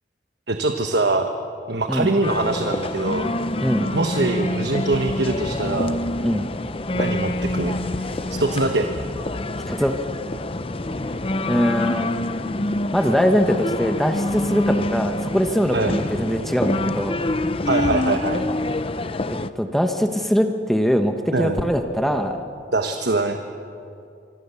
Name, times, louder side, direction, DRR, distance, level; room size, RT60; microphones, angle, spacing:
voice 1, 0.5-1.3 1.7-3.3 3.9-6.0 6.9-7.8 8.3-8.9 15.7-16.0 17.6-18.4 21.3-21.7 22.7-23.4, right 2 dB, 60° right, 5 dB, 1.2 m, -23 dB
sound 1, 2.2-19.5, left 1 dB, 30° left, 0.7 m, -26 dB
voice 2, 3.6-3.9 6.2-6.5 9.7-9.9 11.5-12.1 12.9-17.2 19.3-22.4, equal, ahead, 5 dB, 1.1 m, -22 dB
25.5 x 24.5 x 7.1 m, 2.6 s
head